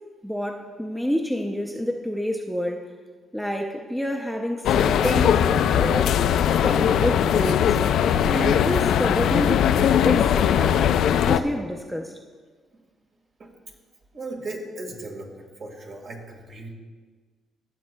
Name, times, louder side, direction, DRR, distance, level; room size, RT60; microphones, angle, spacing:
voice 1, 0.2-2.9 3.3-6.2 6.6-7.8 8.2-10.9 11.2-12.1, equal, ahead, 3 dB, 0.5 m, -28 dB
sound 1, 4.6-11.4, left 9 dB, 75° left, 0.3 m, -20 dB
voice 2, 14.1-16.7, right 2 dB, 55° right, 0 dB, 1.7 m, -37 dB
15.5 x 6.9 x 2.2 m, 1.5 s
cardioid pair, 90°, 0 cm